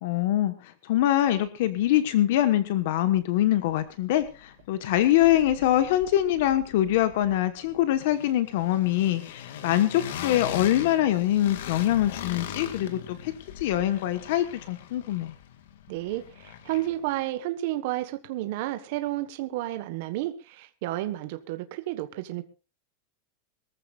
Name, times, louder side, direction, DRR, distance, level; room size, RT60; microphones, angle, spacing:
voice 1, 0.0-15.3, left 13 dB, 60° left, 11 dB, 1.2 m, -24 dB
sound 1, 3.5-4.6 4.9-17.1, left 9 dB, 80° left, 2.1 m, -41 dB
voice 2, 15.9-22.4, right 15 dB, 50° right, 9 dB, 1.3 m, -31 dB
23.0 x 14.5 x 2.4 m, 0.33 s
supercardioid pair, 175°, 0 cm